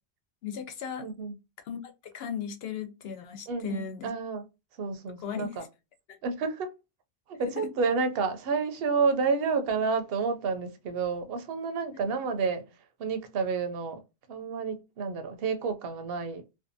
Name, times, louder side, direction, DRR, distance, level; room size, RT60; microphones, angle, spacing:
voice 1, 0.4-1.1 1.7-4.1 5.2-5.5 7.4-7.7 12.0-12.2, left 7 dB, 75° left, 0.8 m, -37 dB
voice 2, 1.0-1.3 3.5-4.5 4.8-5.6 6.2-6.7 7.3-12.6 13.0-14.0 14.3-16.4, right 5 dB, 70° right, 0.8 m, -30 dB
2.6 x 2.3 x 2.6 m
omnidirectional pair, 1.1 m